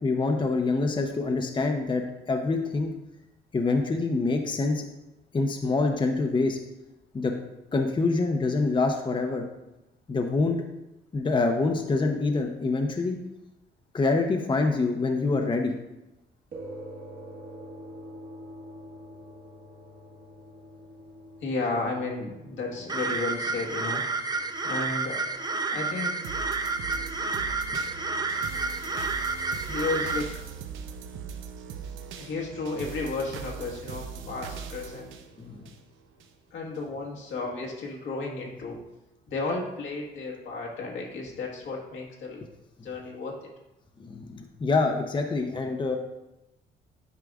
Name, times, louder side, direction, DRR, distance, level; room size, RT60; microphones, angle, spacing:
voice 1, 0.0-2.9 3.5-4.9 5.3-6.6 7.1-7.3 7.7-9.4 10.1-10.6 11.1-13.2 13.9-15.7 35.4-35.7 44.0-46.0, left 3 dB, 25° left, 4 dB, 0.7 m, -26 dB
sound 1, 16.5-25.3, equal, 55° right, 1.5 m, -46 dB
voice 2, 21.4-24.3 24.6-25.4 25.7-26.1 29.6-30.4 32.2-35.1 36.5-38.8 39.3-42.4 42.8-43.5, left 3 dB, 75° left, -2 dB, 1.5 m, -33 dB
sound 2, 22.9-30.2, right 3 dB, 20° right, 0.5 m, -30 dB
sound 3, 26.2-36.3 36.7-36.8, right 7 dB, 85° right, 0.6 m, -40 dB
9.3 x 4.9 x 2.4 m, 0.97 s
cardioid pair, 90°, 20 cm